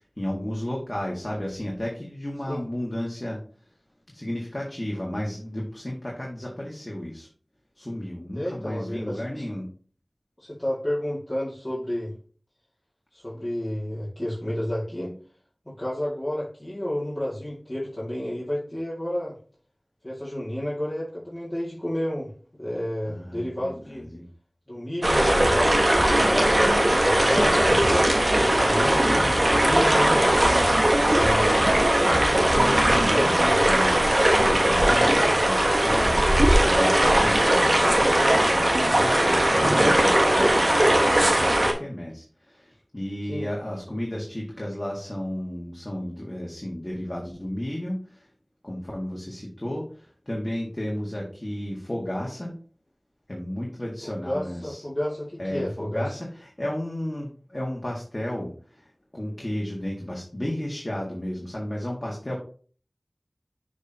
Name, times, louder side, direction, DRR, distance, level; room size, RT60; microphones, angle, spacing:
voice 1, 0.0-3.4 4.1-7.3 7.8-9.7 23.1-24.3 27.3-27.9 29.0-29.5 31.1-32.0 32.3-48.3 48.6-52.5 53.3-54.8 55.4-62.4, left 1 dB, 35° left, -3 dB, 1.7 m, -33 dB
voice 2, 8.3-9.4 10.4-12.1 13.1-15.1 15.7-19.4 20.0-22.3 22.6-24.1 24.7-27.8 28.4-30.2 43.3-43.5 54.0-56.1, left 1 dB, 20° left, -8 dB, 2.1 m, -31 dB
sound 1, 25.0-41.7, right 1 dB, 60° right, 1.4 m, -19 dB
6.5 x 5.1 x 2.9 m, 0.41 s
wide cardioid pair, 40°, 0 cm